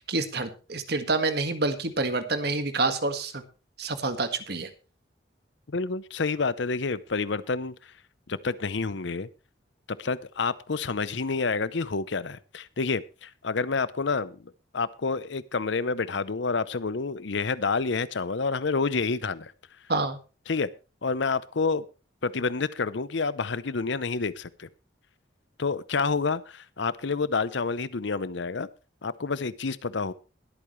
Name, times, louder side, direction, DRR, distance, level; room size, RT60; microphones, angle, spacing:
voice 1, 0.1-3.4 3.8-4.7 19.9-20.2, right 3 dB, 55° right, 1.7 m, -27 dB
voice 2, 5.7-7.7 8.3-9.3 10.0-19.5 20.5-20.7 21.0-21.8 22.2-24.7 25.6-28.7 29.0-30.1, left 4 dB, 70° left, 0.7 m, -28 dB
21.0 x 8.7 x 3.2 m
head